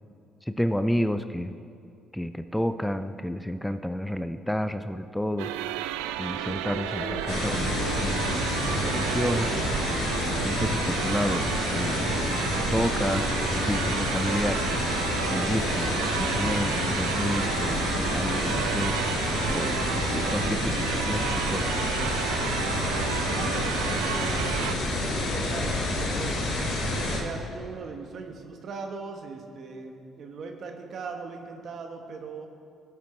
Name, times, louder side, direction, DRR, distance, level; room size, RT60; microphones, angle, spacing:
voice 1, 0.4-1.5 2.1-5.5 6.2-9.5 10.4-12.2 12.5-14.8 15.3-19.0 19.5-21.2 21.5-21.8, equal, 5° left, 10 dB, 0.5 m, -30 dB
sound 1, 5.4-24.8, right 12 dB, 80° right, 0.3 m, -32 dB
sound 2, 6.4-26.4, left 2 dB, 90° left, 1.6 m, -45 dB
sound 3, 7.3-27.2, left 2 dB, 70° left, 2.8 m, -28 dB
voice 2, 23.3-26.3 26.9-32.5, right 4 dB, 55° right, 4 dB, 1.2 m, -39 dB
17.5 x 7.0 x 3.2 m, 2.5 s
hypercardioid pair, 50°, 0 cm